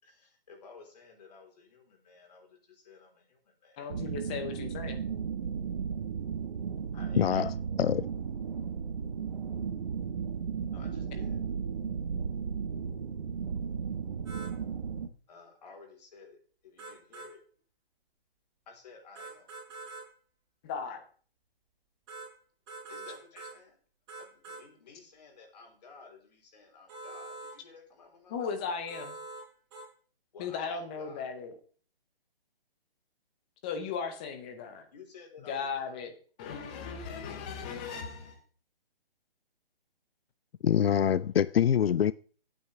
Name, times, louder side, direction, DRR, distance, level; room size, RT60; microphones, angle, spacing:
voice 1, 0.0-3.9 6.9-7.6 10.7-11.4 15.3-17.4 18.7-19.5 22.9-23.8 24.2-28.4 30.3-31.5 34.9-36.1, left 4 dB, 45° left, 4.1 m, -54 dB
voice 2, 3.8-5.0 20.6-21.0 28.3-29.1 30.4-31.6 33.6-34.9 35.5-36.1 36.4-38.4, left 6 dB, 10° left, 0.5 m, -36 dB
sound 1, 3.9-15.1, right 6 dB, 55° right, 1.3 m, -35 dB
voice 3, 7.2-7.5 7.8-8.1 40.6-42.1, left 9 dB, 85° left, 0.5 m, -24 dB
sound 2, 14.3-14.5 16.8-17.3 19.2-20.1 22.1-22.3 22.7-23.6 24.1-24.6 26.9-27.6 28.9-29.5 29.7-29.9, right 3 dB, 25° right, 5.3 m, -44 dB
15.5 x 8.8 x 3.5 m
hypercardioid pair, 155°, 29 cm